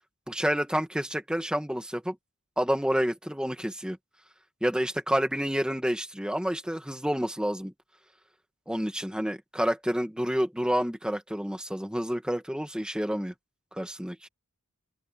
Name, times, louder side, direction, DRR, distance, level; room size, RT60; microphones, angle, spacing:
voice 1, 0.3-2.2 2.6-4.0 4.6-7.7 8.7-13.3 13.7-14.3, equal, 5° right, 2.0 m, -29 dB
open air
head